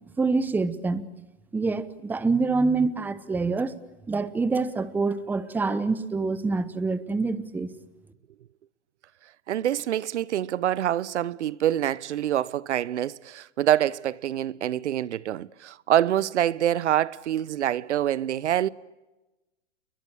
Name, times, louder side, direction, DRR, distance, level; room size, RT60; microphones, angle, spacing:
voice 1, 0.2-1.0 1.5-3.7 4.1-7.7, right 3 dB, 5° right, 0.9 m, -26 dB
voice 2, 9.5-18.7, right 11 dB, 65° right, 0.9 m, -26 dB
29.5 x 22.5 x 8.6 m
hypercardioid pair, 135°, 37 cm